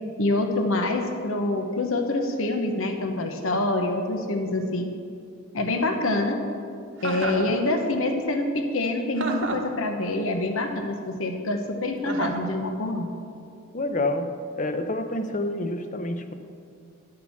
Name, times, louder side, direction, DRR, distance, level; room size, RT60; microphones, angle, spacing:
voice 1, 0.2-4.9 5.5-6.4 7.0-13.1, left 2 dB, 70° left, 4 dB, 1.0 m, -26 dB
Chuckle chortle, 7.0-7.5 9.2-9.7 12.1-12.5, right 3 dB, 60° right, 1.0 m, -30 dB
voice 2, 13.7-16.3, left 1 dB, 35° left, 8 dB, 0.7 m, -28 dB
11.5 x 6.7 x 7.1 m, 2.4 s
head